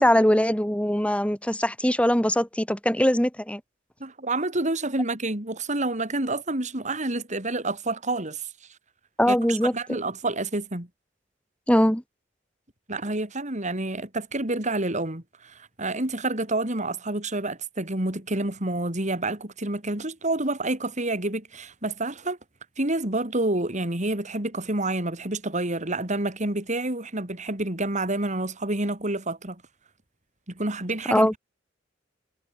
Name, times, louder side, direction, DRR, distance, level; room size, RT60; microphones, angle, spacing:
voice 1, 0.0-3.6 9.2-9.7 11.7-12.0 31.1-31.4, equal, 5° left, 5.5 m, -21 dB
voice 2, 4.0-8.5 9.3-10.9 12.9-22.4 22.8-29.6 30.5-31.4, right 2 dB, 40° right, 4.0 m, -28 dB
head